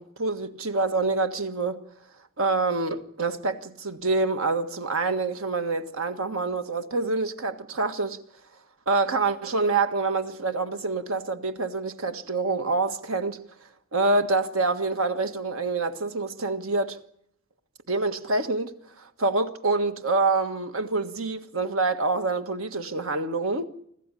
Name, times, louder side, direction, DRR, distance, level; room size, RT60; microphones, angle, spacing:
voice 1, 0.0-1.8 2.4-8.2 8.9-13.4 13.9-17.0 17.9-23.7, right 3 dB, 80° right, 1.6 m, -26 dB
25.5 x 14.5 x 9.9 m
head